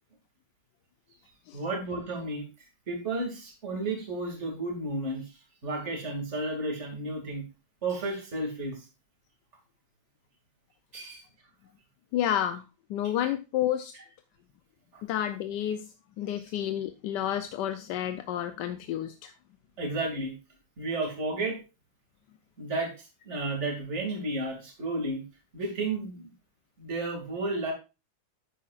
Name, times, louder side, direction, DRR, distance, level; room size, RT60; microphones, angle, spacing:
voice 1, 1.5-2.5 2.9-5.3 5.6-7.4 7.8-8.9 10.9-11.2 14.9-15.0 16.3-16.4 19.8-20.3 20.8-21.6 22.6-25.2 25.5-26.3 26.8-27.7, right 2 dB, 35° right, 1 dB, 2.6 m, -32 dB
voice 2, 12.1-12.6 12.9-13.9 15.0-15.9 16.2-19.3, left 11 dB, 70° left, 9 dB, 1.1 m, -30 dB
11.0 x 8.4 x 2.4 m, 0.29 s
omnidirectional pair, 2.2 m